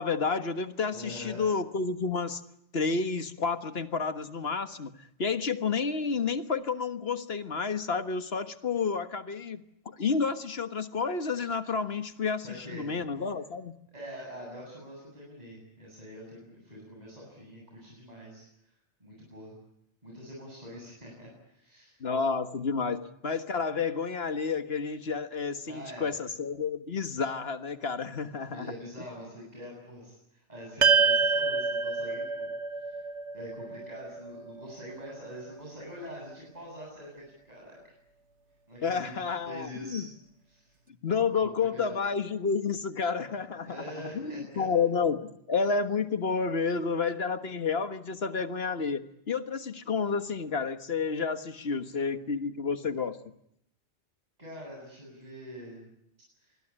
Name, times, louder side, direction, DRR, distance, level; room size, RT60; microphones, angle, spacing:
voice 1, 0.0-2.4 2.7-13.7 22.0-28.7 38.8-40.1 41.0-53.2, left 5 dB, 60° left, 10 dB, 1.6 m, -30 dB
voice 2, 0.9-1.4 12.4-12.9 13.9-18.4 19.0-19.5 20.0-22.0 25.7-26.1 28.4-32.5 32.8-33.0 33.3-37.9 38.7-39.1 39.4-40.1 40.5-40.7 41.2-42.0 43.6-44.6 54.4-55.8 56.4-56.5, equal, 35° right, -3 dB, 8.2 m, -44 dB
sound 1, 30.8-35.3, right 5 dB, 75° right, 1.6 m, -27 dB
26.0 x 20.5 x 9.9 m, 0.78 s
omnidirectional pair, 1.2 m